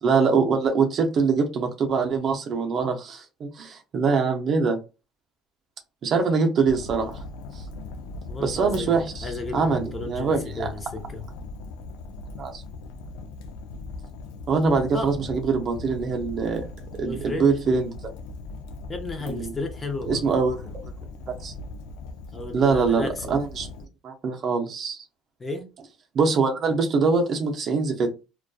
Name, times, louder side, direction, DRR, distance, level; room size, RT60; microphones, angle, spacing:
voice 1, 0.0-4.8 6.0-7.2 7.5-7.6 8.4-9.3 9.5-10.7 12.4-12.6 14.5-16.7 17.0-17.9 19.3-19.5 20.1-20.6 21.3-21.5 22.5-23.7 24.0-25.0 26.1-28.2, right 4 dB, 40° right, 0.5 m, -23 dB
Fire, 6.6-23.9, left 3 dB, 85° left, 0.4 m, -39 dB
voice 2, 8.3-11.2 14.9-15.3 17.0-17.5 18.9-20.3 22.3-23.3 25.4-25.7, left 2 dB, 20° left, 0.6 m, -33 dB
2.5 x 2.2 x 2.2 m
cardioid pair, 120°, 0 cm